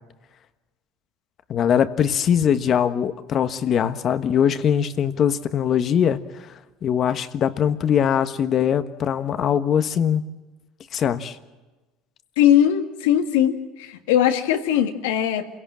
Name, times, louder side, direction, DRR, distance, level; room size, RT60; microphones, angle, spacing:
voice 1, 1.5-6.2 6.8-10.2 10.9-11.4, left 8 dB, 45° left, 12 dB, 1.4 m, -21 dB
voice 2, 12.4-15.5, left 10 dB, 85° left, 6 dB, 1.9 m, -20 dB
27.5 x 17.0 x 7.6 m, 1.2 s
supercardioid pair, 90°, 0 cm